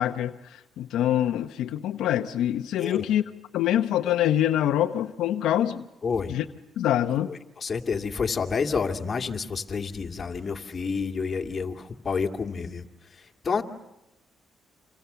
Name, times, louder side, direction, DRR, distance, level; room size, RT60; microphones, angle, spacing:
voice 1, 0.0-3.2 3.5-5.8 6.3-6.4 6.8-7.3, left 11 dB, 85° left, 7 dB, 0.9 m, -25 dB
voice 2, 6.0-6.4 7.3-13.6, left 5 dB, 35° left, 3 dB, 2.5 m, -29 dB
29.0 x 26.5 x 6.9 m, 0.93 s
cardioid pair, 90°, 0 cm